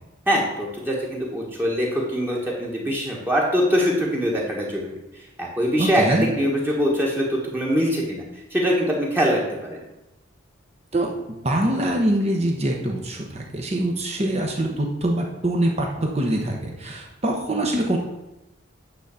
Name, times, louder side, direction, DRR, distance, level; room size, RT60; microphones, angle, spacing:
voice 1, 0.3-5.0 5.4-8.2 8.5-9.8, equal, 10° right, -3 dB, 1.4 m, -23 dB
voice 2, 5.8-6.3 10.9-18.0, right 1 dB, 30° right, 0 dB, 1.0 m, -24 dB
9.2 x 3.9 x 7.0 m, 0.95 s
head